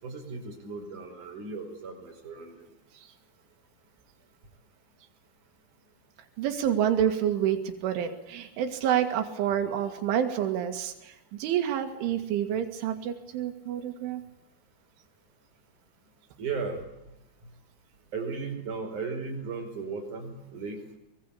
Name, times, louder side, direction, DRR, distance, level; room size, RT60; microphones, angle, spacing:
voice 1, 0.0-2.7 16.4-16.8 18.1-21.0, right 4 dB, 45° right, 4 dB, 6.1 m, -36 dB
voice 2, 6.4-14.2, right 9 dB, 90° right, 4 dB, 4.4 m, -28 dB
24.0 x 22.0 x 8.5 m, 0.88 s
omnidirectional pair, 5.3 m